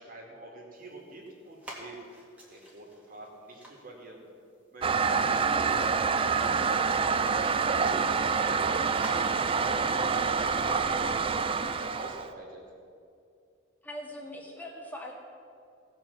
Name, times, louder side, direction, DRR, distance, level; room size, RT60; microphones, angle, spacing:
voice 1, 0.0-2.0 2.5-4.2 4.7-6.2 6.5-8.1 8.4-10.8 11.1-12.6, right 1 dB, 45° right, -1 dB, 2.4 m, -47 dB
sound 1, 0.7-12.3, right 1 dB, 5° right, 2.1 m, -52 dB
Toilet flush, 4.8-12.3, right 5 dB, 25° right, 0.4 m, -27 dB
voice 2, 13.8-15.1, left 1 dB, 10° left, -1 dB, 1.7 m, -41 dB
17.0 x 5.8 x 7.1 m, 2.4 s
head